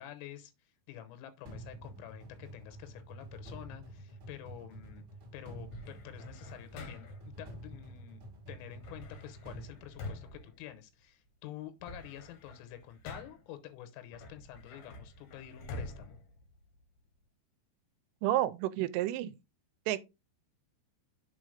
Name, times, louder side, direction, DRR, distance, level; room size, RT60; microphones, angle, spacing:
voice 1, 0.0-5.0 5.3-8.2 8.5-16.2, left 12 dB, 85° left, 3.5 m, -48 dB
sound 1, 1.4-10.6, right 1 dB, 35° right, 2.2 m, -49 dB
sound 2, 5.7-7.4 8.8-11.3 11.6-13.6 14.1-17.1, left 2 dB, 70° left, 2.1 m, -47 dB
voice 2, 18.2-19.3 19.9-20.0, right 14 dB, 85° right, 3.2 m, -30 dB
7.7 x 3.8 x 5.0 m
omnidirectional pair, 5.8 m